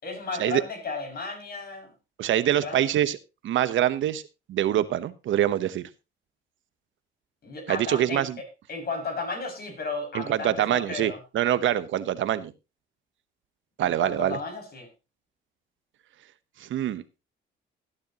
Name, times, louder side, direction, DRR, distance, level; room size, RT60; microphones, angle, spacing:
voice 1, 0.0-1.9 2.6-3.0 7.4-11.2 13.8-14.9, left 3 dB, 50° left, 6.2 m, -34 dB
voice 2, 2.2-3.2 3.4-4.2 4.5-5.8 7.7-8.4 10.1-12.5 13.8-14.4 16.6-17.0, right 11 dB, 75° right, 1.0 m, -25 dB
17.5 x 10.0 x 2.9 m
cardioid pair, 90°, 20 cm